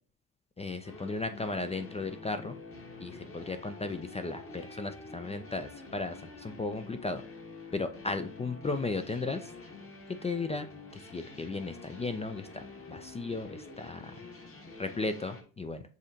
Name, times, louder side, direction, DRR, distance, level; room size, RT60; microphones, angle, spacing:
voice 1, 0.6-2.6 3.0-7.2 7.7-9.5 10.2-10.7 10.9-14.1 14.8-15.8, left 3 dB, 15° left, 8 dB, 0.4 m, -35 dB
sound 1, 0.8-15.4, left 3 dB, 30° left, 1.2 m, -48 dB
7.1 x 2.6 x 2.8 m, 0.40 s
hypercardioid pair, 60°, 42 cm